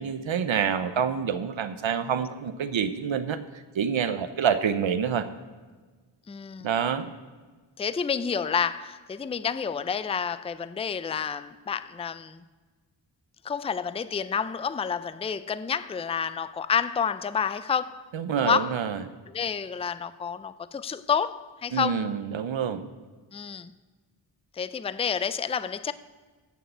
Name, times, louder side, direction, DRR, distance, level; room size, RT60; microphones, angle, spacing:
voice 1, 0.0-3.4 3.7-5.3 6.6-7.1 18.1-19.0 21.7-22.8, right 7 dB, 80° right, 0.8 m, -27 dB
voice 2, 6.3-6.7 7.8-12.4 13.4-18.0 18.4-18.7 19.3-22.1 23.3-23.7 24.5-25.9, left 6 dB, 15° left, 0.3 m, -29 dB
16.0 x 6.5 x 8.0 m
wide cardioid pair, 100°, 46 cm